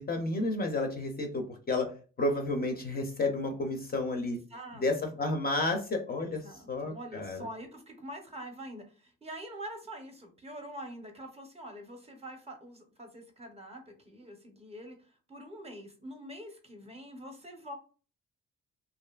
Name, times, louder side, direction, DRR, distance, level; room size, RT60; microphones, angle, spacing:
voice 1, 0.0-1.9 2.2-4.4 4.8-6.4 6.7-7.4, left 2 dB, 30° left, 4 dB, 0.5 m, -31 dB
voice 2, 4.3-5.2 6.2-15.0 15.3-17.7, right 1 dB, 20° right, 4 dB, 0.5 m, -45 dB
2.6 x 2.4 x 2.2 m, 0.38 s
cardioid pair, 90°, 30 cm